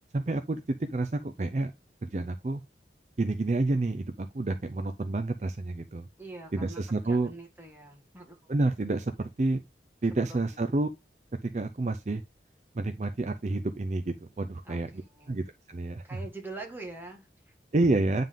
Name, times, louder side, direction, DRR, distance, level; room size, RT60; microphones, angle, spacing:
voice 1, 0.1-1.7 2.0-2.6 3.2-6.1 6.5-7.3 8.5-9.6 10.0-10.9 11.4-12.2 12.7-14.9 15.3-16.2 17.7-18.2, right 2 dB, 40° right, 0.5 m, -29 dB
voice 2, 6.2-8.5 10.1-10.6 14.6-15.4 16.0-17.5, right 2 dB, 10° right, 1.6 m, -45 dB
9.1 x 3.7 x 3.6 m
head